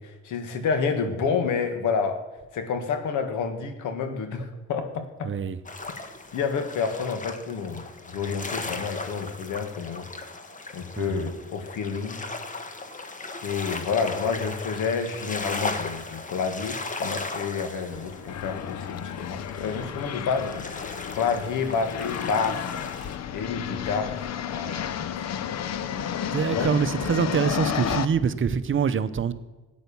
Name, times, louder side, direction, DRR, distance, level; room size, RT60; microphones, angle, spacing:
voice 1, 0.0-2.2 2.5-5.3 6.3-10.1 10.7-12.2 13.4-22.8 23.3-24.2 24.5-25.1 26.5-26.8, left 5 dB, 80° left, 1.8 m, -29 dB
voice 2, 5.3-5.6 11.0-11.1 26.3-29.3, right 6 dB, 40° right, 0.8 m, -24 dB
sound 1, 5.7-23.2, left 3 dB, 25° left, 1.3 m, -37 dB
sound 2, 17.9-28.1, left 9 dB, 60° left, 0.8 m, -32 dB
13.0 x 9.4 x 7.0 m
cardioid pair, 90°, 30 cm